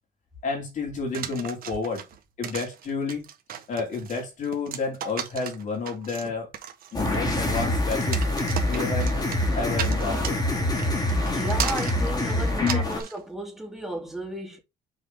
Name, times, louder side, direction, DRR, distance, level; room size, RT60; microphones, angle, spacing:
voice 1, 0.4-2.0 2.4-3.3 3.7-6.5 6.9-8.2 8.7-9.1 9.6-10.4 12.6-12.8, left 4 dB, 50° left, 3.9 m, -30 dB
sound 1, 1.1-13.2, right 9 dB, 60° right, 1.6 m, -36 dB
sound 2, 6.9-13.0, left 1 dB, 25° left, 3.1 m, -25 dB
voice 2, 11.3-14.6, right 1 dB, ahead, 3.1 m, -34 dB
6.6 x 4.7 x 3.9 m
cardioid pair, 110°, 17 cm